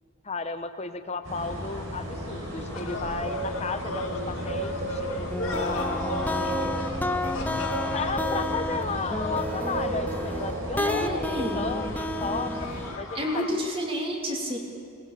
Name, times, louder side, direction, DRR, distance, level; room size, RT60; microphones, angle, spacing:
voice 1, 0.2-6.4 7.9-12.7 13.0-13.7, left 4 dB, 30° left, 9 dB, 1.1 m, -34 dB
sound 1, 1.2-12.9, right 1 dB, 65° right, 6.1 m, -33 dB
sound 2, 2.7-10.0 11.6-13.5, left 3 dB, 80° left, 2.4 m, -38 dB
sound 3, 5.3-12.9, left 1 dB, 10° left, 0.7 m, -31 dB
voice 2, 10.8-11.6 13.1-14.6, equal, 25° right, 0 dB, 3.2 m, -29 dB
22.0 x 19.5 x 6.9 m, 2.6 s
head